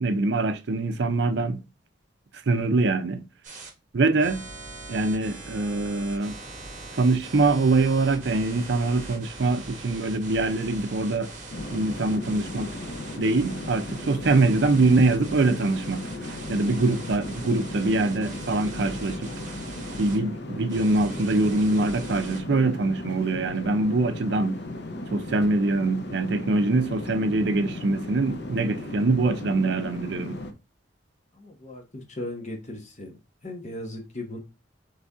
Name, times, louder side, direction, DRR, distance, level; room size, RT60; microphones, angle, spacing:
voice 1, 0.0-1.6 2.5-3.2 3.9-4.4 4.9-6.4 7.0-11.3 11.7-12.7 13.2-16.0 16.5-19.3 20.0-24.6 25.1-30.4, right 3 dB, 60° right, 0.5 m, -24 dB
sound 1, 3.4-3.7 4.2-20.2 20.7-22.4, right 2 dB, 40° right, 1.2 m, -41 dB
sound 2, 11.5-30.5, left 1 dB, 60° left, 0.7 m, -36 dB
voice 2, 31.3-33.2 33.4-34.4, left 1 dB, 40° left, 1.2 m, -37 dB
4.1 x 3.4 x 3.5 m
head